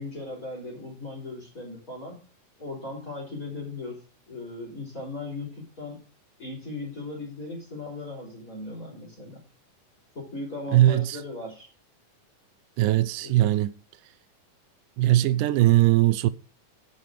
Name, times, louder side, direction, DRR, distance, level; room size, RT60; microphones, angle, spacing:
voice 1, 0.0-2.3 2.6-4.0 4.3-6.0 6.4-9.4 10.1-11.7 13.2-13.4, left 2 dB, 25° left, 4.6 m, -37 dB
voice 2, 10.7-11.2 12.8-13.8 15.0-16.3, right 14 dB, 85° right, 2.3 m, -20 dB
10.5 x 7.5 x 4.9 m
omnidirectional pair, 3.7 m